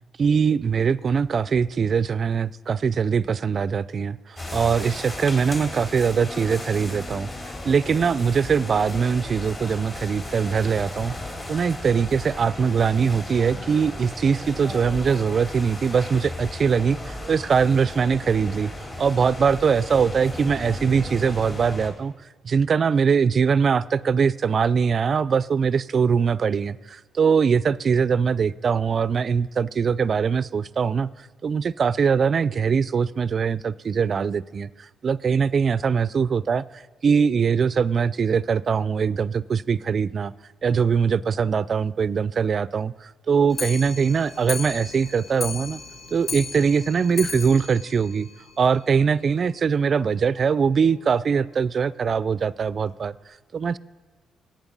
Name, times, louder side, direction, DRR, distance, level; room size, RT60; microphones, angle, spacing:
voice 1, 0.2-7.3 7.6-11.1 11.5-18.7 19.0-22.1 22.4-40.3 40.6-45.8 46.1-48.3 48.6-53.1 53.5-53.8, right 6 dB, 45° right, 0.4 m, -22 dB
sound 1, 4.4-21.9, left 1 dB, 35° left, 3.1 m, -35 dB
Clock, 43.5-49.0 49.3-49.4 49.7-49.8 50.1-50.2 50.5-50.6 51.3-51.4 52.1-52.2 52.9-53.0, left 5 dB, 60° left, 1.2 m, -36 dB
17.0 x 8.9 x 5.3 m
cardioid pair, 90°, 0 cm